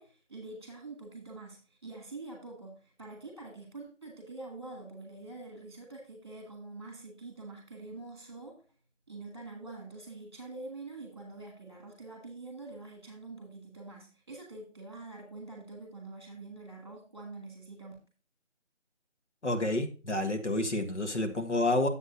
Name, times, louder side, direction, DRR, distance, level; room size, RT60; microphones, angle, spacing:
voice 1, 0.0-8.6 9.1-17.9, right 3 dB, 20° right, 1 dB, 2.2 m, -45 dB
voice 2, 19.4-21.9, left 1 dB, 70° left, 5 dB, 1.8 m, -29 dB
9.7 x 7.9 x 2.6 m, 0.35 s
figure-of-eight pair, 180°, 37 cm